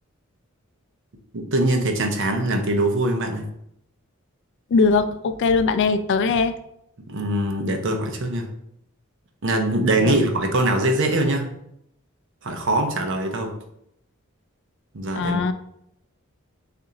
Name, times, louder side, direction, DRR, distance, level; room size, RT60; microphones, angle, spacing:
voice 1, 1.3-3.4 7.1-8.5 9.4-11.5 12.4-13.5 14.9-15.4, right 1 dB, 60° right, 5 dB, 0.7 m, -22 dB
voice 2, 4.7-6.5 10.0-10.2 15.1-15.5, left 4 dB, 55° left, 11 dB, 0.3 m, -20 dB
6.7 x 2.5 x 2.8 m, 0.75 s
head